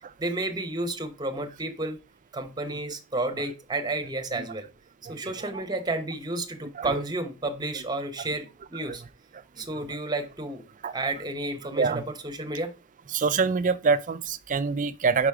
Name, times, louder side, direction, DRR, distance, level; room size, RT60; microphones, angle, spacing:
voice 1, 0.2-2.0 2.3-4.7 5.1-9.0 9.6-10.6 10.9-12.7, right 2 dB, 20° right, 0.9 m, -31 dB
voice 2, 5.1-5.6 6.6-7.0 7.7-7.8 8.2-8.3 8.9-9.1 9.3-10.0 10.8-10.9 11.7-12.0 13.1-15.3, right 5 dB, 40° right, 0.4 m, -27 dB
5.0 x 4.9 x 4.7 m
head